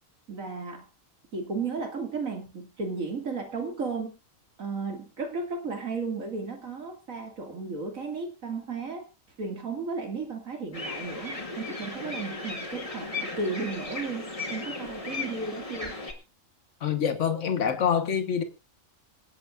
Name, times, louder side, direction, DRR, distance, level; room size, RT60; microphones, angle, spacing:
voice 1, 0.3-0.8 1.3-4.1 4.6-9.0 9.4-16.0, right 4 dB, 85° right, 3 dB, 2.8 m, -34 dB
sound 1, 10.7-16.1, left 3 dB, 25° left, 1.8 m, -36 dB
voice 2, 16.8-18.4, left 7 dB, 65° left, 8 dB, 1.6 m, -26 dB
26.5 x 8.9 x 2.5 m, 0.27 s
omnidirectional pair, 1.4 m